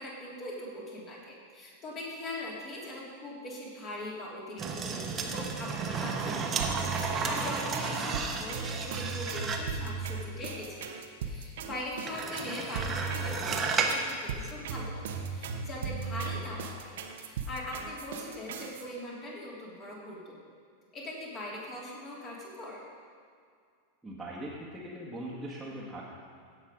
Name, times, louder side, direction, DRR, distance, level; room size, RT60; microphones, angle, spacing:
voice 1, 0.0-11.0 11.2-20.3 20.9-22.8, left 1 dB, 30° left, -4 dB, 3.2 m, -41 dB
sound 1, 4.6-9.8 12.1-14.1 14.4-14.5, right 5 dB, 20° right, 1.1 m, -33 dB
sound 2, 6.6-18.8, right 5 dB, 55° right, 0.9 m, -37 dB
voice 2, 24.0-26.0, right 1 dB, 5° right, -8 dB, 1.7 m, -40 dB
16.0 x 5.7 x 5.2 m, 2.2 s
figure-of-eight pair, 90°, 0 cm